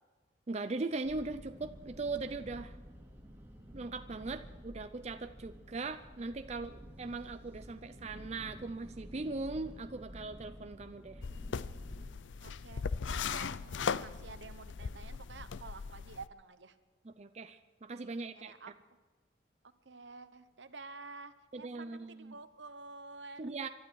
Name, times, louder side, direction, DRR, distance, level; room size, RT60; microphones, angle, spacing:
voice 1, 0.5-2.8 3.7-11.2 17.2-18.5 21.5-22.3 23.4-23.7, right 3 dB, 35° right, 9 dB, 0.5 m, -40 dB
sound 1, 1.0-12.1, equal, 10° right, 2.8 m, -51 dB
sound 2, 11.2-16.3, left 5 dB, 85° left, 0.5 m, -38 dB
voice 2, 12.4-12.8 13.1-16.8 18.1-18.7 19.8-23.5, right 4 dB, 75° right, 11 dB, 1.0 m, -50 dB
24.0 x 12.5 x 4.7 m, 1.3 s
head